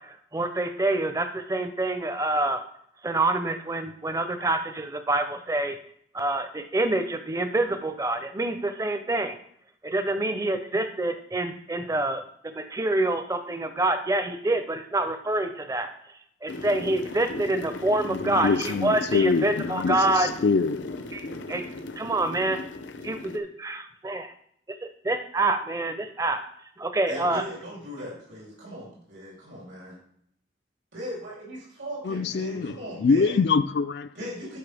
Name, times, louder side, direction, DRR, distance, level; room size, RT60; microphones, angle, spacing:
voice 1, 0.0-2.6 3.0-5.8 6.1-9.4 9.8-15.9 16.4-20.3 21.1-21.6 22.0-22.6 23.0-24.3 24.8-26.4 26.8-27.4, right 2 dB, 20° right, 0.6 m, -27 dB
sound 1, 16.5-23.4, left 2 dB, 85° left, 0.8 m, -37 dB
voice 2, 18.1-20.8 32.0-34.1, left 4 dB, 60° left, 0.4 m, -24 dB
voice 3, 27.1-30.0 30.9-33.4 34.2-34.6, equal, 80° right, 3.3 m, -38 dB
12.0 x 5.2 x 3.4 m
head